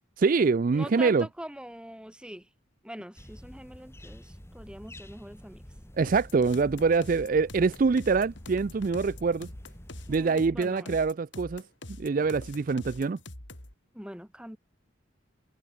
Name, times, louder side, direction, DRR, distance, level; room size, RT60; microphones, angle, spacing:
voice 1, 0.2-1.3 6.0-9.5 10.1-11.6 12.0-13.2, right 4 dB, 40° right, 0.4 m, -25 dB
voice 2, 0.7-2.4 2.8-5.6 10.1-11.0 13.9-14.6, equal, 5° right, 2.8 m, -43 dB
sound 1, 3.1-10.3, equal, 10° left, 5.5 m, -48 dB
sound 2, 6.1-13.7, left 1 dB, 60° left, 4.4 m, -44 dB
head